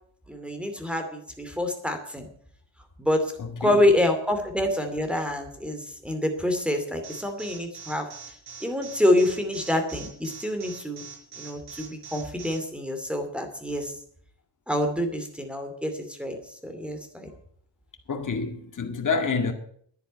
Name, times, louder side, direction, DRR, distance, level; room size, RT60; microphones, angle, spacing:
voice 1, 0.3-2.3 3.0-3.2 3.6-8.1 8.6-11.0 11.4-13.9 14.7-16.4 16.6-17.3, left 1 dB, ahead, 2.6 m, -26 dB
voice 2, 3.4-3.8 18.1-19.5, left 4 dB, 40° left, 2.1 m, -28 dB
Alarm, 7.0-12.6, right 6 dB, 55° right, 5.6 m, -42 dB
11.0 x 10.0 x 9.2 m
wide cardioid pair, 130°, 45 cm